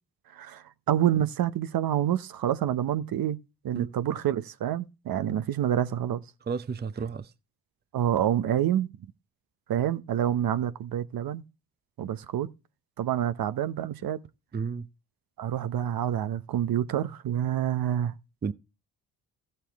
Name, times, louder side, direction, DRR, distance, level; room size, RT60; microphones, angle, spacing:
voice 1, 0.3-3.4 3.6-6.2 7.9-8.9 9.7-11.4 12.0-12.5 13.0-14.2 15.4-18.1, right 11 dB, 60° right, 0.8 m, -27 dB
voice 2, 6.5-7.3 14.5-14.9 18.4-18.5, right 5 dB, 25° right, 0.7 m, -32 dB
14.0 x 6.9 x 3.5 m
supercardioid pair, 65°, 39 cm